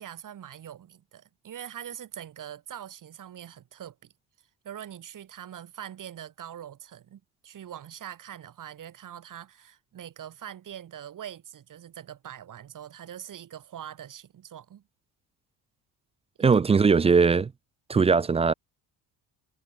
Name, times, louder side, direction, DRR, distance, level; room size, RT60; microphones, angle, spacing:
voice 1, 0.0-4.1 4.6-14.8 16.4-16.6, right 10 dB, 55° right, 6.2 m, -43 dB
voice 2, 16.4-17.5 17.9-18.5, right 5 dB, 15° right, 0.3 m, -20 dB
cardioid pair, 135°, 39 cm